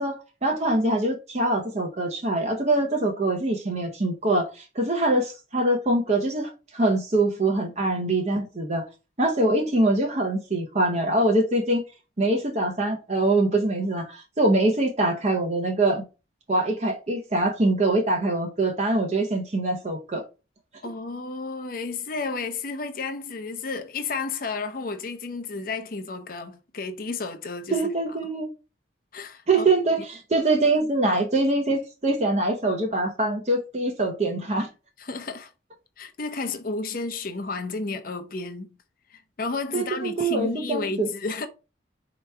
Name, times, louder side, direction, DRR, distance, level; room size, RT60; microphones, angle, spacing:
voice 1, 0.0-8.8 9.2-11.8 12.2-16.0 16.5-20.2 27.7-28.5 29.5-34.7 39.7-41.1, right 2 dB, 35° right, 0.7 m, -24 dB
voice 2, 20.8-27.8 29.1-29.7 35.0-35.5 36.0-38.8 39.1-41.5, left 3 dB, 50° left, 0.6 m, -32 dB
4.4 x 2.9 x 3.5 m
head